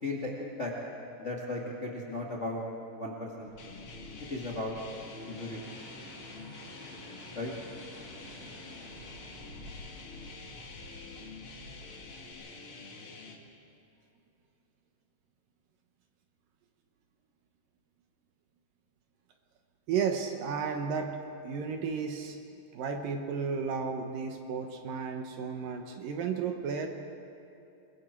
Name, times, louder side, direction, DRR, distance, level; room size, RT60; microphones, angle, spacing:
voice 1, 0.0-0.7 1.2-2.6 2.9-3.5 4.3-4.7 5.3-5.8 7.3-7.5, left 2 dB, 80° left, -3 dB, 0.6 m, -36 dB
sound 1, 3.4-12.3, equal, 35° right, 5.7 m, -51 dB
sound 2, 3.6-13.3, left 3 dB, 65° left, 1.3 m, -47 dB
voice 2, 19.9-21.2 21.4-22.4 22.7-26.9, right 6 dB, 70° right, 4 dB, 2.3 m, -33 dB
27.0 x 22.0 x 4.5 m, 2.7 s
omnidirectional pair, 5.0 m